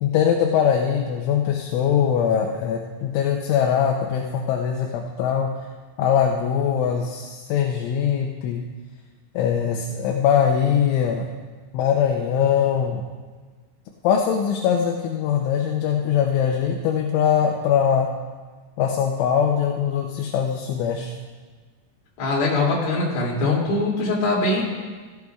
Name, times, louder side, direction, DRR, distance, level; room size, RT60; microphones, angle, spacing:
voice 1, 0.0-5.5 6.0-8.6 9.3-11.3 11.7-13.0 14.0-18.1 18.8-21.1, left 8 dB, 80° left, 1 dB, 3.1 m, -22 dB
voice 2, 22.2-24.6, left 2 dB, 55° left, -5 dB, 4.2 m, -22 dB
16.5 x 14.5 x 2.4 m, 1.4 s
omnidirectional pair, 5.6 m